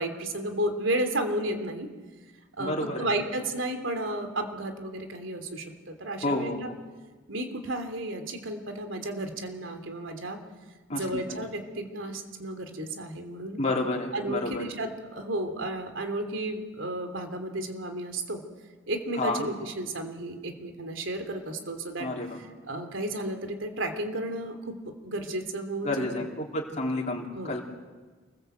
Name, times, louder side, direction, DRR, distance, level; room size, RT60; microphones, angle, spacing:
voice 1, 0.0-1.9 2.6-6.7 7.3-10.4 10.9-13.6 14.1-18.4 18.9-22.1 22.6-24.7 25.0-26.1 27.3-27.5, right 1 dB, 85° right, 6 dB, 3.1 m, -33 dB
voice 2, 2.6-3.1 6.2-6.6 10.9-11.4 13.6-14.6 19.1-19.5 22.0-22.4 25.8-27.6, left 2 dB, 35° left, -1 dB, 3.6 m, -30 dB
28.0 x 20.5 x 8.0 m, 1.4 s
head